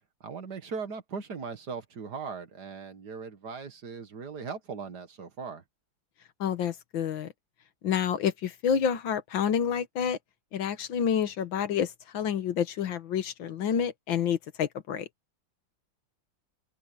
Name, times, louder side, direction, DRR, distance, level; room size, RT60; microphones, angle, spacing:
voice 1, 0.2-5.6, right 5 dB, 60° right, 2.2 m, -39 dB
voice 2, 6.4-7.3 7.8-10.2 10.5-15.1, left 8 dB, 85° left, 2.0 m, -28 dB
open air
omnidirectional pair, 2.1 m